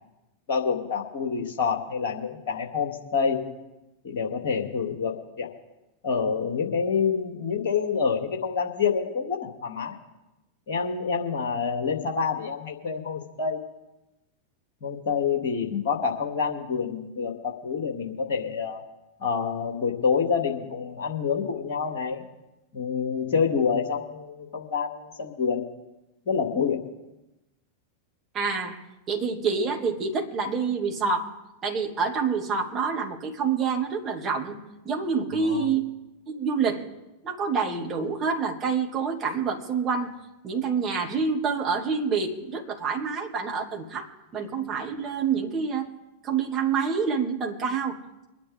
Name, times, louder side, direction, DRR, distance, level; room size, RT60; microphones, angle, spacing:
voice 1, 0.5-3.4 4.0-5.5 6.0-10.0 10.7-13.6 14.8-18.8 19.2-22.2 22.7-25.6 26.3-26.9 35.3-35.7, left 6 dB, 50° left, 1 dB, 2.8 m, -27 dB
voice 2, 28.3-34.6 34.8-35.9 36.3-36.9 37.2-40.1 40.4-45.9 46.2-48.0, right 5 dB, 30° right, 0 dB, 2.6 m, -27 dB
24.5 x 10.0 x 3.7 m, 0.97 s
figure-of-eight pair, 90°, 0 cm